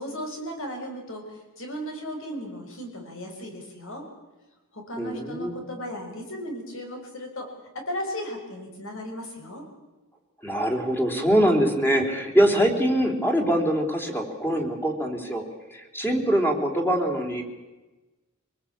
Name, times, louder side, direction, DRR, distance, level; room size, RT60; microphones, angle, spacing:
voice 1, 0.0-4.1 4.7-7.5 7.7-9.7, equal, 65° left, 3 dB, 6.0 m, -36 dB
voice 2, 5.0-5.6 10.4-15.4 15.7-17.4, equal, 10° left, 3 dB, 3.4 m, -23 dB
25.5 x 20.0 x 8.7 m, 1.1 s
head